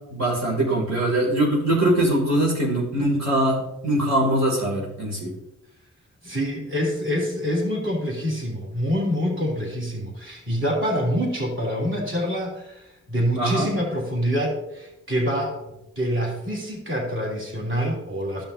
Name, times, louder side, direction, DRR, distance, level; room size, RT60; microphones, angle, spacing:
voice 1, 0.1-5.3 13.3-13.7, right 1 dB, 60° right, -3 dB, 2.6 m, -22 dB
voice 2, 6.2-15.6 16.0-18.4, equal, 40° right, -3 dB, 3.0 m, -26 dB
14.5 x 5.7 x 2.7 m, 0.89 s
cardioid pair, 95°, 30 cm